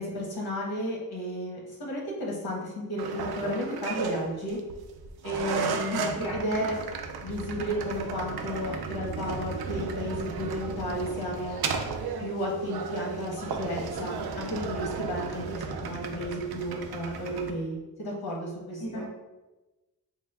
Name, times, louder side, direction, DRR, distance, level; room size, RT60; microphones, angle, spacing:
voice 1, 0.0-4.6 5.2-6.8 7.2-11.6 12.2-19.1, equal, 75° left, -3 dB, 1.4 m, -33 dB
sound 1, 3.0-17.5, right 5 dB, 80° right, 0.5 m, -34 dB
voice 2, 5.7-6.7 18.8-19.1, right 1 dB, 55° left, -3 dB, 0.8 m, -36 dB
4.9 x 2.2 x 3.3 m, 1.1 s
wide cardioid pair, 130°, 37 cm